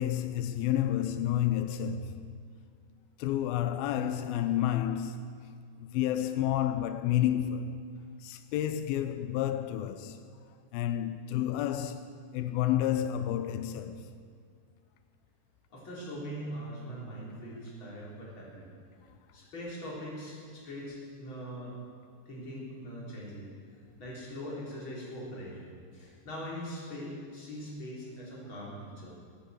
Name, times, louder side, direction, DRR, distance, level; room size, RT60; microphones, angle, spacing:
voice 1, 0.0-2.1 3.2-5.4 5.8-7.8 8.2-10.2 10.7-12.1 12.3-14.0, left 11 dB, 90° left, 2.1 m, -30 dB
voice 2, 15.7-18.7 19.3-21.7 22.3-23.5 24.0-25.6 25.9-29.1, equal, 30° left, 4.1 m, -41 dB
17.0 x 9.2 x 8.0 m
omnidirectional pair, 5.0 m